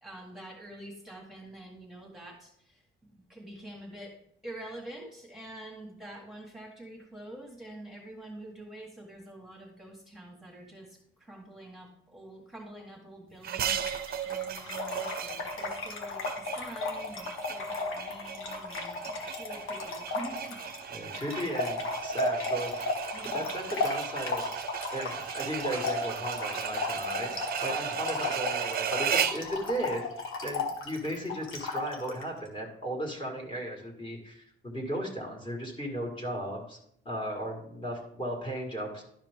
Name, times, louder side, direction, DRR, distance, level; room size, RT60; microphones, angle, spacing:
voice 1, 0.0-4.2 4.4-21.1 23.1-23.5, right 1 dB, ahead, -2 dB, 1.7 m, -46 dB
sound 1, 13.4-29.5, right 8 dB, 50° right, 0.6 m, -36 dB
Trickle dribble / Fill (with liquid), 13.8-32.2, left 3 dB, 85° left, 1.4 m, -35 dB
voice 2, 20.9-22.9 23.3-24.5 24.9-30.1 30.4-36.8 37.1-39.0, right 1 dB, 25° left, 1 dB, 2.0 m, -36 dB
11.5 x 4.9 x 3.6 m, 0.71 s
cardioid pair, 130°, 21 cm